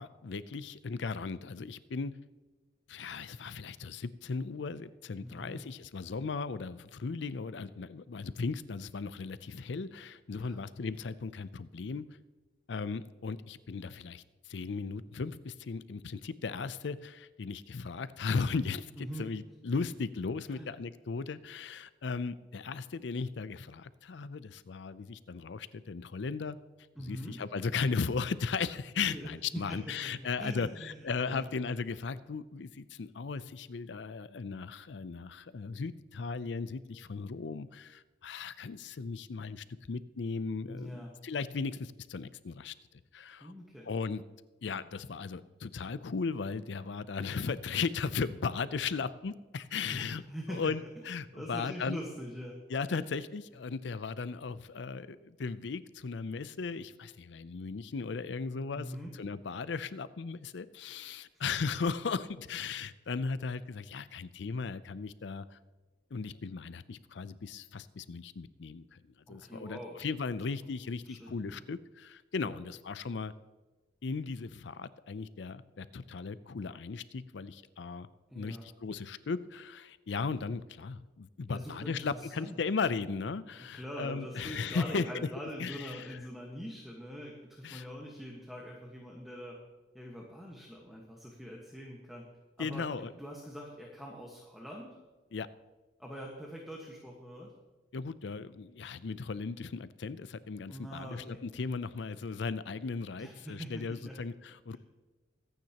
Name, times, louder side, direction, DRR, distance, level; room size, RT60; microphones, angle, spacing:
voice 1, 0.0-2.1 2.9-12.0 12.7-26.6 27.0-42.7 43.1-43.5 43.9-44.2 44.6-50.2 50.5-52.0 52.7-65.6 66.1-69.0 69.3-73.3 74.0-78.1 78.3-85.1 85.6-86.2 87.6-87.8 92.6-93.1 95.3-95.5 97.9-104.8, left 4 dB, 70° left, 15 dB, 0.5 m, -37 dB
voice 2, 5.2-5.6 10.4-10.6 19.0-19.3 20.5-20.7 26.9-27.4 29.0-30.1 30.4-31.4 40.7-41.1 43.4-43.9 49.9-50.7 51.3-52.6 52.9-53.0 58.7-59.1 69.3-70.0 71.1-71.6 72.4-72.6 78.3-78.7 81.5-82.6 83.7-89.6 89.9-92.2 92.6-94.9 96.0-97.5 100.7-101.4 103.1-104.2, equal, ahead, -2 dB, 1.4 m, -43 dB
24.5 x 9.3 x 2.9 m, 1.2 s
head